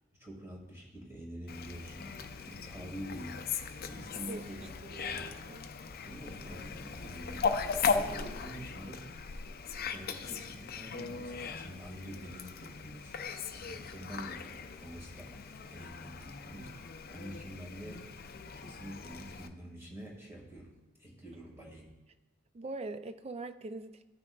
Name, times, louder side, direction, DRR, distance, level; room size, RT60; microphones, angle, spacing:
voice 1, 0.0-3.5 3.8-5.3 6.0-9.1 9.8-13.1 13.5-21.9, right 1 dB, 15° right, -3 dB, 1.9 m, -47 dB
Fowl, 1.5-19.5, left 5 dB, 45° left, 0.5 m, -38 dB
voice 2, 4.8-5.6 22.5-24.0, right 2 dB, 30° right, 11 dB, 0.4 m, -42 dB
14.5 x 6.0 x 2.3 m, 1.1 s
head